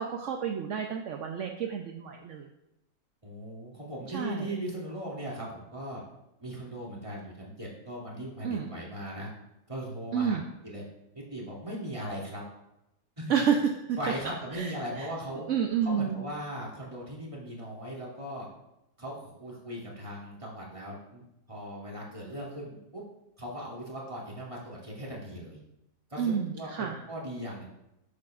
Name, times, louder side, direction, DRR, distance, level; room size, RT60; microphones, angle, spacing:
voice 1, 0.0-2.5 4.1-4.5 8.4-8.7 10.1-10.4 13.3-13.6 13.9-14.0 14.5-15.1 15.5-16.2 26.2-27.0, right 7 dB, 60° right, 3 dB, 0.8 m, -30 dB
voice 2, 3.2-6.0 6.4-9.3 9.7-10.4 10.6-10.8 11.1-12.4 13.2-13.3 14.0-15.5 15.8-18.5 19.0-23.0 23.4-25.6 26.1-27.6, equal, 20° right, -5 dB, 2.5 m, -38 dB
12.5 x 8.3 x 2.5 m, 0.88 s
omnidirectional pair, 1.8 m